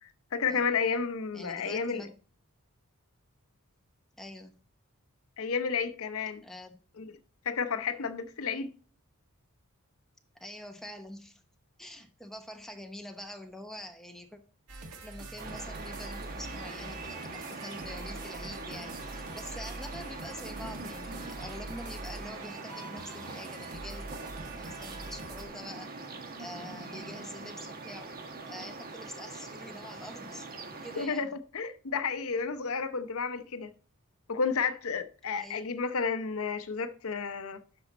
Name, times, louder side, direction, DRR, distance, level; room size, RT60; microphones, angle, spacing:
voice 1, 0.0-2.1 5.4-6.4 7.0-7.1 7.4-8.7 31.0-31.3 31.5-33.7 34.3-37.6, left 5 dB, 65° left, 0.8 m, -31 dB
voice 2, 1.3-2.1 4.2-4.5 6.4-6.8 10.3-11.4 11.8-14.4 15.0-24.1 24.6-28.1 28.5-30.5 30.8-31.3 35.4-35.7, left 1 dB, ahead, 0.9 m, -45 dB
sound 1, 14.7-25.5, right 2 dB, 85° right, 1.7 m, -44 dB
sound 2, 15.4-31.1, right 3 dB, 40° right, 1.2 m, -43 dB
12.0 x 4.3 x 4.1 m
head